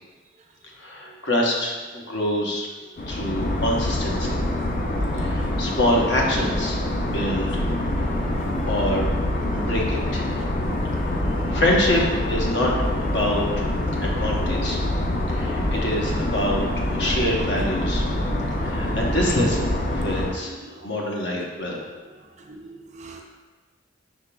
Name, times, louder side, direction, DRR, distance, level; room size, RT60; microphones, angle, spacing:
voice 1, 0.8-2.7 3.1-4.4 5.2-6.8 7.1-7.6 8.7-9.1 9.5-10.3 11.0-11.1 11.5-12.7 13.0-13.7 14.0-14.8 15.3-18.0 18.6-21.9, left 1 dB, 70° left, -2 dB, 0.8 m, -25 dB
sound 1, 3.0-20.3, left 1 dB, 45° left, 0.4 m, -25 dB
voice 2, 4.7-5.7 8.4-8.5 10.6-10.7 11.5-11.6 20.4-21.1 22.2-23.2, right 2 dB, 35° right, 2 dB, 0.4 m, -45 dB
5.7 x 3.6 x 2.2 m, 1.3 s
head